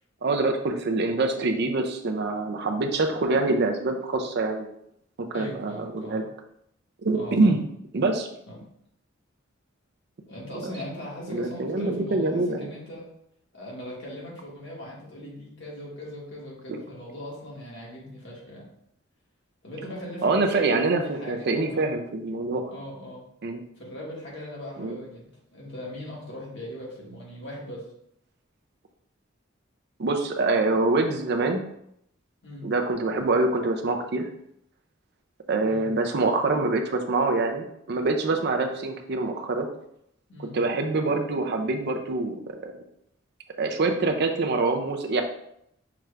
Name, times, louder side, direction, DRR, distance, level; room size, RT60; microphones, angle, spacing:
voice 1, 0.2-4.7 5.2-6.2 7.0-7.6 7.9-8.3 11.3-12.7 16.7-16.8 20.2-22.6 23.4-23.6 24.8-25.0 30.0-31.6 32.6-34.3 35.5-39.7 40.5-42.7 43.6-45.2, right 3 dB, 55° right, 5 dB, 0.5 m, -25 dB
voice 2, 5.3-6.2 7.1-7.6 8.5-8.6 10.3-13.1 13.5-18.7 19.6-22.0 22.7-23.2 23.8-27.8 32.4-32.7 35.6-35.9 40.3-40.6, left 1 dB, 60° left, -4 dB, 1.6 m, -39 dB
5.9 x 2.4 x 3.2 m, 0.74 s
head